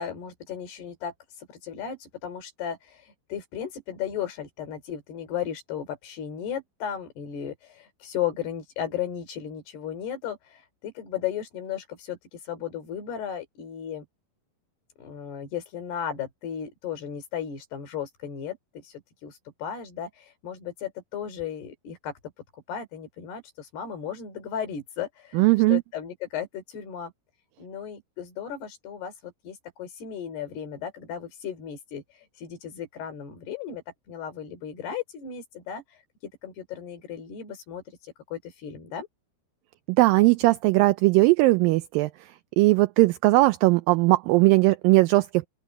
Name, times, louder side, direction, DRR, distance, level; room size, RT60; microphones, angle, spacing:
voice 1, 0.0-14.0 15.0-22.1 22.5-27.1 27.6-36.0 36.4-39.1, left 8 dB, 80° left, 5.7 m, -35 dB
voice 2, 25.3-25.8 39.9-45.5, right 20 dB, 85° right, 2.0 m, -19 dB
open air
omnidirectional pair, 4.6 m